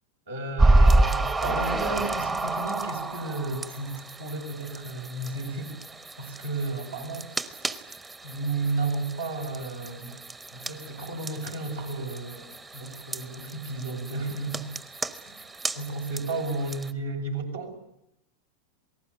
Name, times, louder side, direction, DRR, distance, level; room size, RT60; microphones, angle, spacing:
voice 1, 0.3-5.8 6.2-7.6 8.2-10.1 10.5-14.7 15.3-15.4 15.8-17.8, right 2 dB, 70° right, 2 dB, 5.9 m, -33 dB
sound 1, 0.6-16.9, right 2 dB, 15° right, 1.1 m, -29 dB
28.0 x 19.0 x 8.2 m, 0.80 s
figure-of-eight pair, 90°, 0 cm